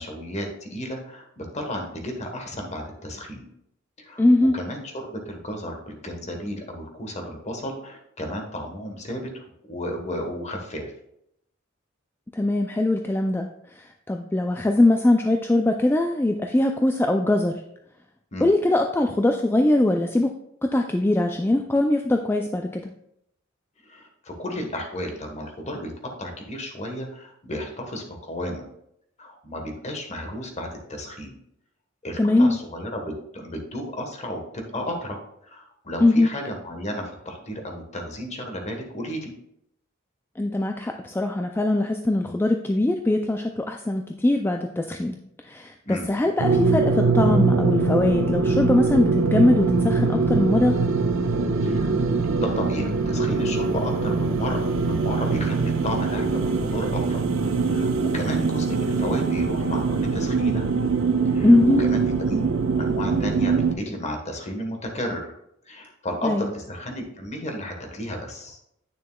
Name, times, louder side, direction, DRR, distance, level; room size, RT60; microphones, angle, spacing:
voice 1, 0.0-3.5 4.0-4.3 4.5-10.9 18.3-18.5 23.8-28.7 29.2-31.4 32.0-39.3 45.8-46.1 51.6-51.9 52.3-57.2 57.6-60.7 61.2-61.5 61.8-62.4 62.8-65.3 65.6-68.6, left 1 dB, 35° left, 3 dB, 1.3 m, -33 dB
voice 2, 4.2-4.6 12.3-17.5 18.4-20.3 20.7-22.8 32.2-32.6 36.0-36.3 40.4-45.2 45.4-50.8 61.4-61.8 66.2-66.5, left 2 dB, 10° left, 4 dB, 0.3 m, -21 dB
sound 1, 46.4-63.7, right 4 dB, 80° right, 0.7 m, -23 dB
9.1 x 6.4 x 2.3 m, 0.76 s
head